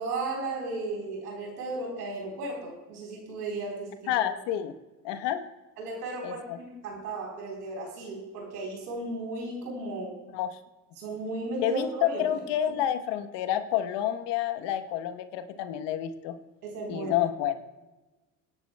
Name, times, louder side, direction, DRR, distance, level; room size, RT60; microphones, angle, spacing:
voice 1, 0.0-4.1 5.8-10.2 11.0-12.4 16.6-17.2, right 2 dB, 85° right, -1 dB, 3.9 m, -35 dB
voice 2, 4.1-4.7 5.0-5.4 6.2-6.6 10.3-10.5 11.6-16.4 16.9-17.6, left 11 dB, 60° left, 10 dB, 1.1 m, -29 dB
24.5 x 11.0 x 2.2 m, 1.1 s
hypercardioid pair, 65°, 47 cm